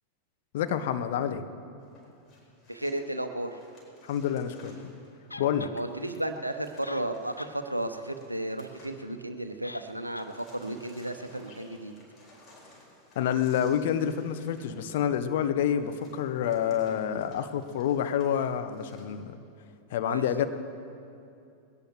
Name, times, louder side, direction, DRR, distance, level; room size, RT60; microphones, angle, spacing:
voice 1, 0.5-1.4 4.0-4.8 5.4-5.7 13.1-19.4 19.9-20.4, left 9 dB, 55° left, 9 dB, 0.9 m, -28 dB
sound 1, 1.8-9.5 9.8-19.0, left 1 dB, 30° left, 4.7 m, -57 dB
voice 2, 2.7-3.6 5.7-11.9 20.0-20.3, right 1 dB, 85° right, 8 dB, 0.8 m, -34 dB
sound 2, 5.3-5.8 6.5-6.6 6.8-7.6 7.9-8.0 9.6-9.9 10.1-10.3, left 2 dB, 85° left, 0.4 m, -44 dB
21.0 x 17.0 x 3.1 m, 2.5 s
figure-of-eight pair, 90°, 0 cm